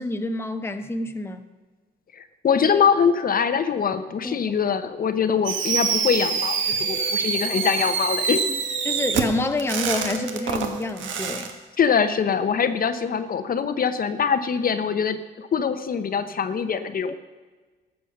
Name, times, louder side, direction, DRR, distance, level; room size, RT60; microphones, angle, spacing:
voice 1, 0.0-1.4 4.2-4.4 7.5-7.6 8.8-11.5, left 2 dB, 10° left, 7 dB, 0.8 m, -28 dB
voice 2, 2.1-8.6 11.8-17.1, left 6 dB, 45° left, 10 dB, 0.8 m, -23 dB
Fireworks, 5.4-11.5, right 6 dB, 75° right, 1.3 m, -26 dB
sound 1, 6.3-11.4 11.8-12.2, right 1 dB, 40° right, 0.9 m, -39 dB
13.0 x 6.9 x 6.6 m, 1.3 s
cardioid pair, 90°, 20 cm